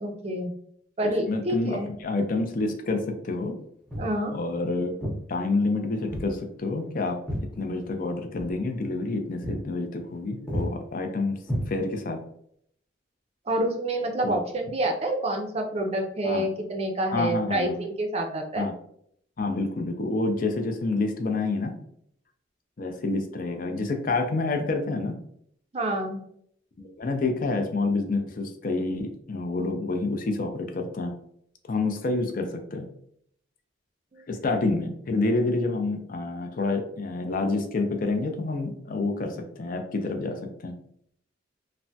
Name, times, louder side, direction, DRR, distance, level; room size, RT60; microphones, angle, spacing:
voice 1, 0.0-0.5 1.0-1.9 4.0-4.3 13.5-18.7 25.7-26.2 34.1-34.2, right 1 dB, 35° right, 3 dB, 0.4 m, -28 dB
voice 2, 1.3-3.5 4.3-4.9 5.3-7.2 7.6-11.4 11.7-12.2 14.2-14.4 16.2-16.5 17.1-17.8 18.6-18.7 19.4-21.7 22.8-25.2 26.8-31.1 31.7-32.9 34.3-40.7, left 3 dB, 45° left, 4 dB, 0.4 m, -28 dB
Walk footsteps, 3.9-4.2 5.0-5.2 6.1-6.3 6.6-8.1 8.3-8.5 8.9-9.1 9.4-9.6 9.9-10.2 10.5-10.7 11.4-12.1, equal, 5° left, 0.7 m, -32 dB
3.3 x 2.1 x 2.6 m, 0.68 s
head